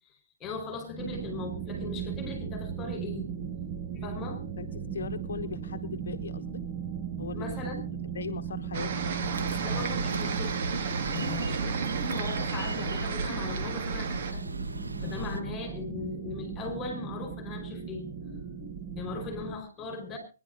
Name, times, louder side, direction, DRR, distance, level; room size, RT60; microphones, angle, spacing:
voice 1, 0.4-3.3 3.9-4.4 7.3-7.9 9.5-10.6 11.0-14.4 15.0-20.2, left 4 dB, 15° left, 5 dB, 4.9 m, -39 dB
sound 1, 1.0-19.6, right 7 dB, 25° right, 1.5 m, -37 dB
voice 2, 4.6-6.6 7.2-7.9 8.1-9.0, left 6 dB, 60° left, 7 dB, 1.1 m, -39 dB
sound 2, 8.7-14.3, right 5 dB, 40° right, 1.9 m, -33 dB
sound 3, 9.2-15.4, right 2 dB, 90° right, 1.4 m, -38 dB
23.5 x 10.5 x 4.0 m, 0.35 s
hypercardioid pair, 150°, 0 cm